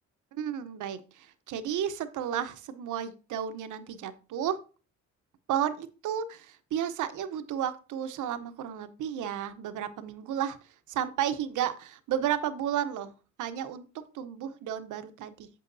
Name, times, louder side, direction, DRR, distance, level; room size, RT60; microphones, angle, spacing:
voice 1, 0.3-4.6 5.5-10.6 10.9-13.1 13.4-15.5, right 9 dB, 80° right, 11 dB, 0.9 m, -33 dB
8.4 x 7.6 x 2.7 m, 0.36 s
cardioid pair, 90°, 30 cm